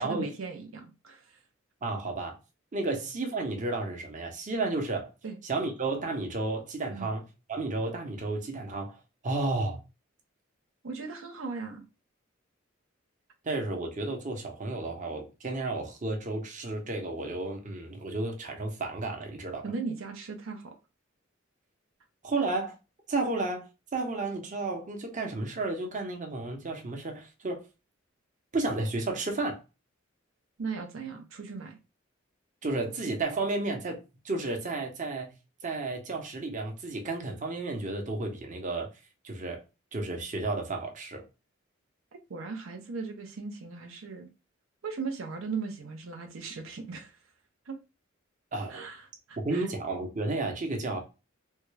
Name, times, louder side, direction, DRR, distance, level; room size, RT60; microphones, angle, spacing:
voice 1, 0.0-1.4 5.2-5.4 6.9-7.1 10.8-11.8 19.6-20.8 30.6-31.8 42.3-44.3 44.8-47.2 47.7-47.8 48.7-49.7, right 4 dB, 80° right, 0.6 m, -38 dB
voice 2, 1.8-2.4 2.7-5.1 5.4-7.2 7.5-9.8 13.4-19.6 22.2-22.7 23.1-23.6 23.9-27.6 28.5-29.6 32.6-34.0 34.2-35.3 35.6-38.9 39.2-39.6 39.9-41.3 48.5-48.8 49.4-51.0, right 2 dB, 40° right, 0.8 m, -32 dB
3.6 x 2.2 x 3.2 m
head